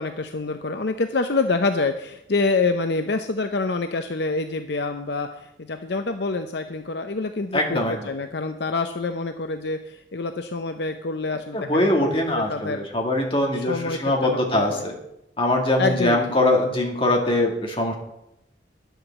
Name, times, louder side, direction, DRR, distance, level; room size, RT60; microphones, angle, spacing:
voice 1, 0.0-12.8 13.5-14.9 15.8-16.2, left 3 dB, 60° left, 7 dB, 0.6 m, -27 dB
voice 2, 7.5-8.0 11.5-14.9 15.4-17.9, left 1 dB, 30° left, 1 dB, 2.2 m, -22 dB
11.0 x 8.1 x 7.3 m, 0.82 s
head